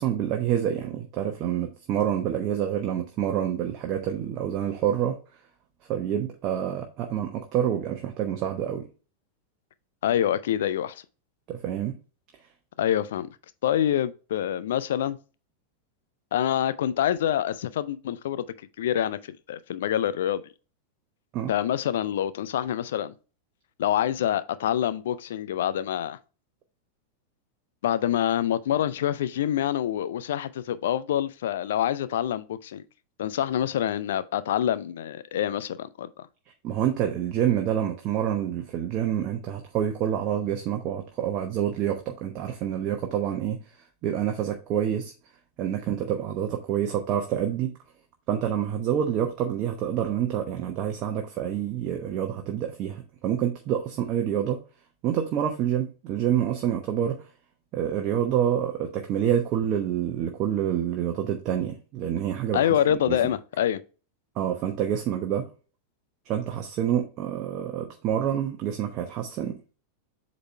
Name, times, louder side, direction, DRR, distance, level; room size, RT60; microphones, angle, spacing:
voice 1, 0.0-5.1 5.9-8.8 11.5-12.0 21.3-21.5 36.6-43.6 44.0-45.1 45.6-47.7 48.3-54.6 55.0-57.2 57.7-62.6 62.9-63.2 64.4-65.5 66.3-69.6, right 10 dB, 35° right, 1.0 m, -27 dB
voice 2, 10.0-11.0 12.8-13.3 13.6-15.2 16.3-18.5 18.8-20.4 21.5-23.1 23.8-26.2 27.8-32.8 33.2-36.3 62.5-63.8, left 10 dB, 60° left, 0.5 m, -26 dB
7.8 x 4.1 x 3.2 m
figure-of-eight pair, 90°, 0 cm